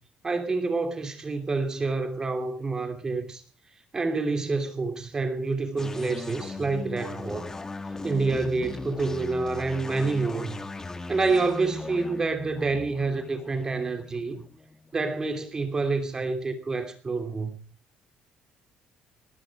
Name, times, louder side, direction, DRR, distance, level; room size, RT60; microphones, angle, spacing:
voice 1, 0.2-3.4 3.9-7.5 8.0-10.6 11.1-14.4 14.9-17.6, right 3 dB, 25° right, 2.8 m, -28 dB
sound 1, 5.8-15.2, left 3 dB, 20° left, 1.6 m, -38 dB
20.5 x 14.5 x 4.7 m
cardioid pair, 130°, 3 cm